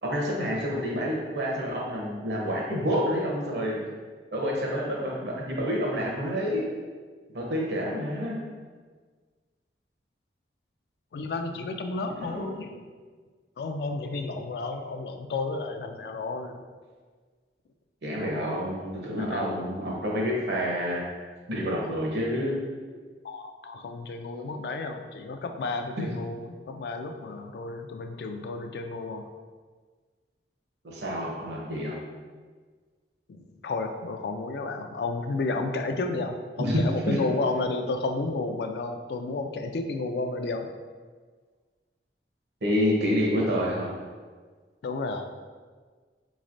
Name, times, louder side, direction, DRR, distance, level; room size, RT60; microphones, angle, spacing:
voice 1, 0.0-3.8 4.3-6.7 7.3-8.4 12.2-12.5 18.0-21.0 21.5-22.7 30.8-31.9 36.6-37.2 42.6-43.9, equal, 75° right, -3 dB, 0.8 m, -28 dB
voice 2, 11.1-12.8 13.6-16.6 19.2-19.5 23.2-29.2 33.3-40.7 44.8-45.3, left 3 dB, 65° left, 5 dB, 0.3 m, -32 dB
4.0 x 3.1 x 2.5 m, 1.5 s
head